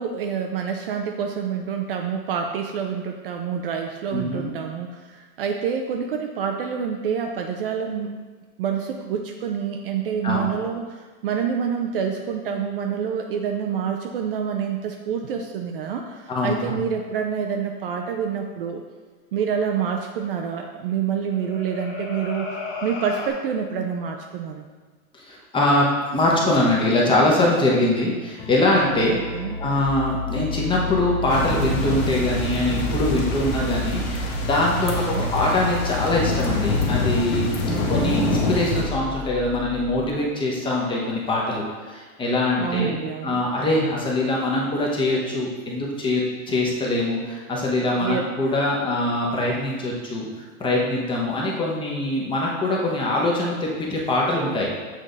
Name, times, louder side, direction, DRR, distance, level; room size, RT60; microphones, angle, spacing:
voice 1, 0.0-8.1 8.6-18.8 19.3-24.6 29.1-29.6 34.8-35.3 37.7-38.2 42.6-43.4 48.0-48.2, right 7 dB, 45° right, 3 dB, 0.4 m, -27 dB
voice 2, 4.1-4.5 10.2-10.4 16.3-16.8 25.3-29.2 29.6-37.5 37.9-43.0 43.2-50.3 50.6-54.7, left 1 dB, 10° left, -3 dB, 0.9 m, -23 dB
sound 1, 21.1-23.3, left 4 dB, 60° left, 1.4 m, -34 dB
sound 2, 28.4-40.1, left 7 dB, 45° left, 0.5 m, -33 dB
sound 3, 31.3-38.8, left 1 dB, 80° left, 1.6 m, -25 dB
7.6 x 3.6 x 3.9 m, 1.4 s
hypercardioid pair, 140°, 42 cm